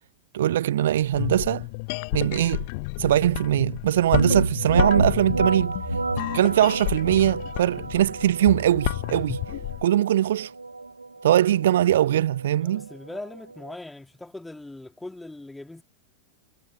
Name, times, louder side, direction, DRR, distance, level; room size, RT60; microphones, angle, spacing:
voice 1, 0.3-1.7 2.1-2.7 3.0-5.8 6.3-9.4 9.8-10.5 11.2-12.9, right 12 dB, 60° right, 0.3 m, -21 dB
sound 1, 1.0-9.8, left 31 dB, 45° left, 0.4 m, -31 dB
sound 2, 4.2-13.7, right 3 dB, 80° right, 0.7 m, -29 dB
voice 2, 12.6-15.8, left 2 dB, 5° left, 2.6 m, -40 dB
figure-of-eight pair, 90°, 0 cm